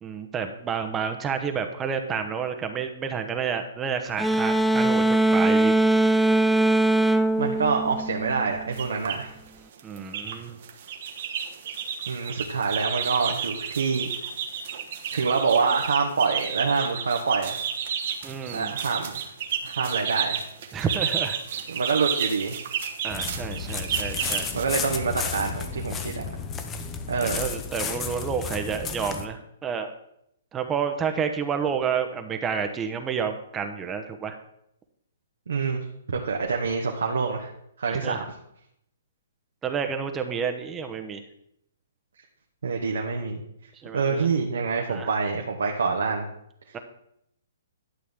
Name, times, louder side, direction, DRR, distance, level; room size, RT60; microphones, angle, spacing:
voice 1, 0.0-5.7 9.8-10.6 18.2-18.7 20.7-21.4 23.0-24.5 27.2-29.9 30.5-34.4 37.9-38.3 39.6-41.2 43.8-44.3 44.9-45.1 46.7-46.8, right 6 dB, 15° right, 6 dB, 0.9 m, -30 dB
sound 1, 4.2-8.6, right 2 dB, ahead, 0.3 m, -21 dB
voice 2, 7.4-9.3 12.1-14.1 15.1-17.6 18.5-19.3 19.6-20.4 21.7-22.6 24.5-26.2 27.1-27.5 35.5-37.5 37.8-38.2 42.6-43.4 43.9-46.3, right 5 dB, 75° right, 1 dB, 1.2 m, -26 dB
sound 2, 8.7-9.2 9.7-10.4 10.6-24.6, right 8 dB, 55° right, 1.2 m, -31 dB
sound 3, 23.1-29.2, left 6 dB, 20° left, 0.8 m, -33 dB
11.5 x 6.2 x 3.6 m, 0.75 s
hypercardioid pair, 135°, 0 cm